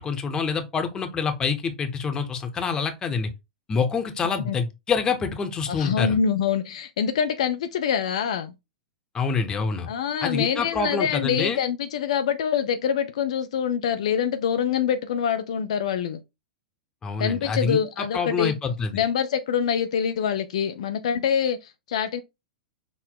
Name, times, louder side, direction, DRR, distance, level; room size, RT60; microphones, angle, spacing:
voice 1, 0.0-3.3 3.7-6.2 9.1-9.9 10.2-11.6 17.0-19.0, left 5 dB, 20° left, 0.8 m, -26 dB
voice 2, 5.7-8.5 9.9-16.2 17.2-18.5 18.9-22.2, left 7 dB, 55° left, 0.4 m, -25 dB
5.9 x 2.0 x 3.8 m
figure-of-eight pair, 95°, 4 cm